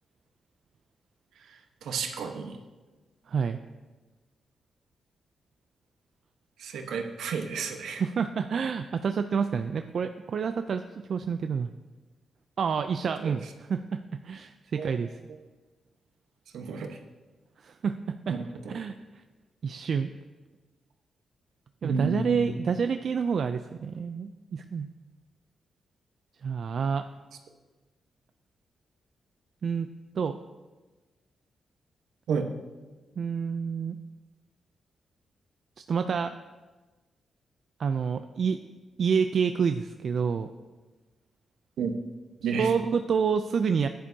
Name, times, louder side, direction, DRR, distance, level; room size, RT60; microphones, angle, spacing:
voice 1, 1.8-2.6 6.6-8.0 13.2-13.3 14.8-14.9 16.5-17.0 18.3-18.8 21.8-22.6 32.3-32.5 41.8-41.9 42.4-42.7, right 5 dB, 85° right, 4 dB, 1.1 m, -31 dB
voice 2, 3.3-3.6 8.0-10.8 11.1-11.7 12.6-15.2 17.6-18.4 18.7-19.2 19.6-20.1 21.8-24.9 26.4-27.0 29.6-29.9 30.1-30.4 33.2-34.0 35.9-36.3 37.8-38.6 39.0-40.5 42.6-43.9, right 6 dB, 65° right, 8 dB, 0.4 m, -28 dB
15.0 x 10.0 x 2.8 m, 1.3 s
cardioid pair, 60°, 0 cm